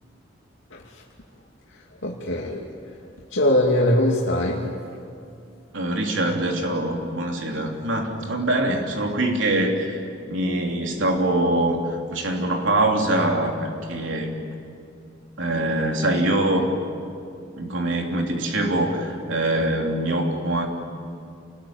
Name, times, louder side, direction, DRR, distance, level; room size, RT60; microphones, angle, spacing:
voice 1, 0.7-1.0 2.0-2.7 3.3-5.0, left 1 dB, 75° left, -3 dB, 2.6 m, -22 dB
voice 2, 5.7-10.0 10.3-14.3 15.4-16.7 17.6-20.7, right 1 dB, 80° right, 2 dB, 3.4 m, -23 dB
28.5 x 20.0 x 9.0 m, 2.4 s
head